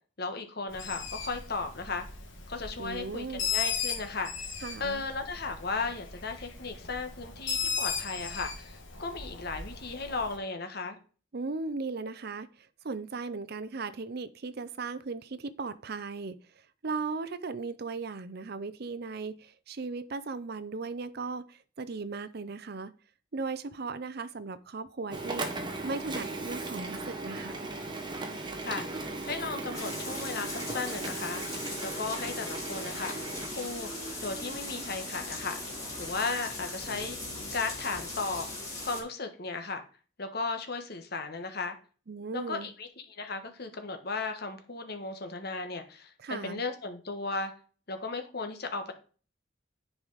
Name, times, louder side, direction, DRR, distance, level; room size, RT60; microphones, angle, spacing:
voice 1, 0.2-2.1 2.5-4.3 4.8-11.0 28.6-33.1 33.5-33.9 34.2-35.6 36.0-37.2 37.5-38.5 38.8-39.8 40.2-41.8 42.3-42.9 43.2-47.5 47.9-48.9, left 4 dB, 55° left, 6 dB, 1.3 m, -35 dB
Bird, 0.7-10.4, left 6 dB, 75° left, 1.6 m, -37 dB
voice 2, 2.8-3.4 4.6-5.0 11.3-22.9 23.3-25.5 25.8-27.7 42.1-42.7 46.2-46.6, right 4 dB, 50° right, 14 dB, 0.6 m, -37 dB
Printer, 25.1-36.4, right 2 dB, 25° right, 1.2 m, -38 dB
sound 1, 29.7-39.0, left 2 dB, 15° left, 3.7 m, -39 dB
10.5 x 4.9 x 4.0 m, 0.38 s
head